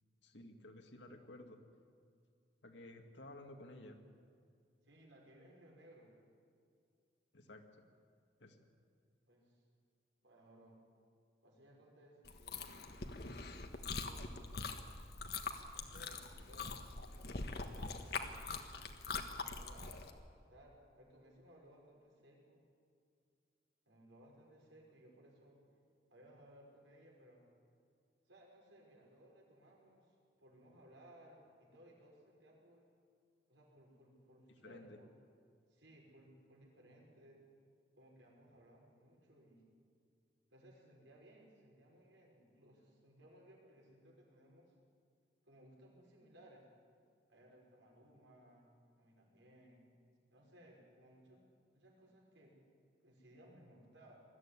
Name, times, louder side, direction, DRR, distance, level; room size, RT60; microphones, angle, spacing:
voice 1, 0.2-1.6 2.6-4.0 7.3-7.6 8.4-8.6 34.5-35.0, left 1 dB, 75° left, 4 dB, 2.1 m, -54 dB
voice 2, 4.8-6.1 9.3-9.6 10.2-10.8 11.4-12.8 13.7-14.5 15.7-16.8 17.3-20.1 20.5-22.6 23.9-25.6 26.1-27.4 28.2-32.9 33.5-35.1 35.7-37.4 38.0-39.6 40.5-44.7 45.4-46.7 47.3-48.7 49.0-49.9 50.3-51.4 51.7-52.6 53.0-54.2, right 1 dB, 80° right, -1 dB, 5.9 m, -62 dB
Chewing mastication, 12.2-20.1, left 4 dB, 55° left, 1.4 m, -43 dB
21.0 x 14.0 x 9.9 m, 2.3 s
head